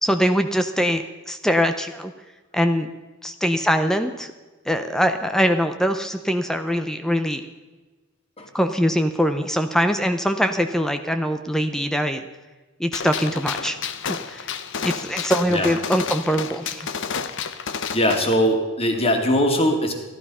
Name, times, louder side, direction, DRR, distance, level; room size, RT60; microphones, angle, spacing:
voice 1, 0.0-2.1 2.5-2.9 3.2-4.3 4.7-7.5 8.5-12.2 12.8-13.8 14.1-14.5 14.8-16.9, equal, 5° left, 8 dB, 0.6 m, -22 dB
Gunshot gunfire, 12.9-18.4, left 6 dB, 65° left, 0.8 m, -30 dB
voice 2, 17.9-19.9, equal, 30° left, 3 dB, 2.3 m, -20 dB
15.0 x 12.0 x 5.6 m, 1.2 s
head